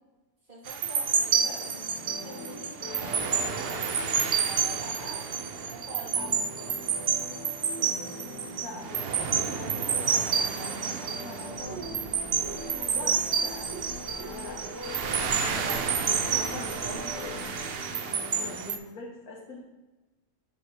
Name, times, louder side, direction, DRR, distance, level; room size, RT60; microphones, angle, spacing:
voice 1, 0.5-1.8 2.2-6.7, equal, 35° right, -7 dB, 3.2 m, -44 dB
sound 1, 0.7-18.8, right 6 dB, 55° right, 0.7 m, -29 dB
sound 2, 1.1-18.6, left 2 dB, 50° left, 1.4 m, -43 dB
voice 2, 8.6-11.8 12.8-13.7 14.2-17.5 18.3-19.6, left 2 dB, 75° left, -4 dB, 1.8 m, -43 dB
sound 3, 11.6-17.7, right 3 dB, 75° right, 3.2 m, -45 dB
9.2 x 7.5 x 3.2 m, 1.1 s
omnidirectional pair, 1.5 m